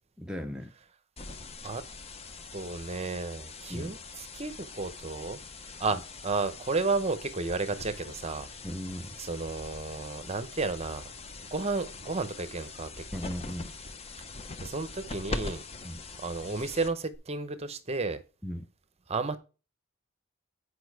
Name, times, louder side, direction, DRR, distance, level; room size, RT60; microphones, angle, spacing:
voice 1, 0.2-0.7 3.7-4.0 8.6-9.2 13.1-13.7 15.8-16.0 18.4-18.7, equal, 5° right, 0.5 m, -37 dB
sound 1, 1.2-17.2, left 3 dB, 30° left, 0.8 m, -43 dB
voice 2, 2.5-5.4 5.8-8.5 9.2-11.1 11.5-12.9 13.2-13.3 14.6-15.6 16.2-18.2 19.1-19.4, right 3 dB, 30° right, 0.8 m, -32 dB
8.6 x 5.0 x 4.7 m
head